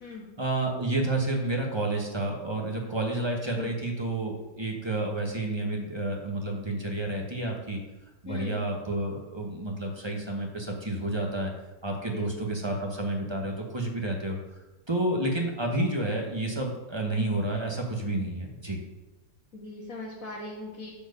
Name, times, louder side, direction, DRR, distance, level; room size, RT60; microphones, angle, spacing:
voice 1, 0.4-7.8 8.2-11.5 11.8-14.4 14.9-18.8, right 2 dB, 20° right, 1 dB, 0.7 m, -30 dB
voice 2, 8.3-8.7 12.1-12.3 19.5-20.9, left 2 dB, 40° left, -6 dB, 1.7 m, -39 dB
10.0 x 4.5 x 6.7 m, 1.1 s
omnidirectional pair, 2.4 m